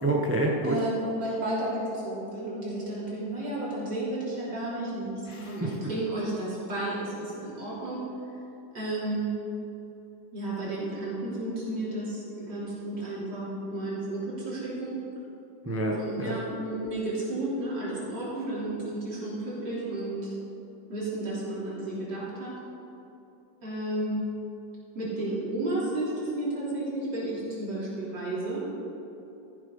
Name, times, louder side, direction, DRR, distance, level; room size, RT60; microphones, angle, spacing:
voice 1, 0.0-0.8 5.3-5.7 15.7-16.4, right 2 dB, 15° right, 0 dB, 0.5 m, -28 dB
voice 2, 0.6-8.0 8.7-9.4 10.3-15.0 16.0-20.3 20.9-22.5 23.6-24.3 24.9-28.6, right 1 dB, 60° right, -8 dB, 3.9 m, -32 dB
14.0 x 7.4 x 5.4 m, 2.9 s
omnidirectional pair, 2.0 m